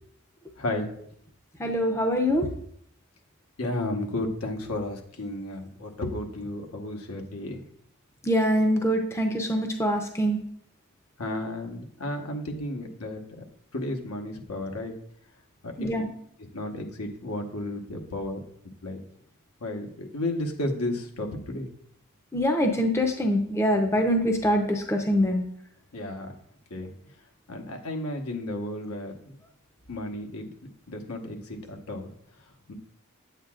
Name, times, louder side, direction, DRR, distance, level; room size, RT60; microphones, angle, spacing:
voice 1, 0.6-0.9 3.6-7.6 11.2-13.4 13.7-14.9 15.6-15.9 16.5-18.4 18.8-19.0 19.6-21.7 25.9-26.3 26.7-26.9 27.5-29.3 29.9-30.5 30.9-32.1 32.7-32.8, left 1 dB, 80° left, 3 dB, 1.1 m, -33 dB
voice 2, 1.6-2.5 8.2-10.4 15.8-16.1 22.3-25.4, equal, 10° left, 3 dB, 0.6 m, -24 dB
8.5 x 8.0 x 2.4 m, 0.66 s
head